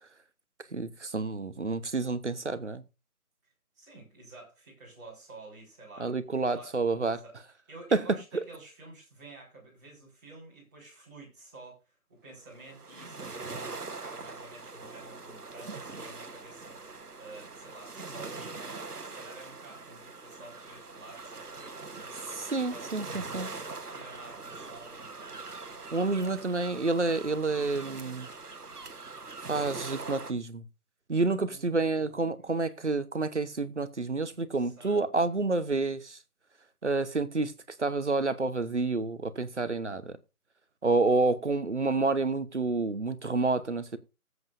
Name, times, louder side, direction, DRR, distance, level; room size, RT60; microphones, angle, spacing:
voice 1, 0.7-2.8 6.0-7.2 7.9-8.0 8.3-8.4 22.3-23.5 25.9-28.3 29.5-30.6 31.1-36.2 36.8-37.5 37.8-40.2 40.8-44.0, right 3 dB, 50° right, 1.0 m, -29 dB
voice 2, 3.7-6.1 6.5-6.7 7.1-7.4 7.7-22.9 23.5-25.5 26.1-26.5 31.3-32.5 34.3-35.4, right 2 dB, 10° right, 4.5 m, -51 dB
sound 1, 12.5-30.3, right 3 dB, 80° right, 1.4 m, -42 dB
20.0 x 8.0 x 2.6 m
figure-of-eight pair, 165°, 45 cm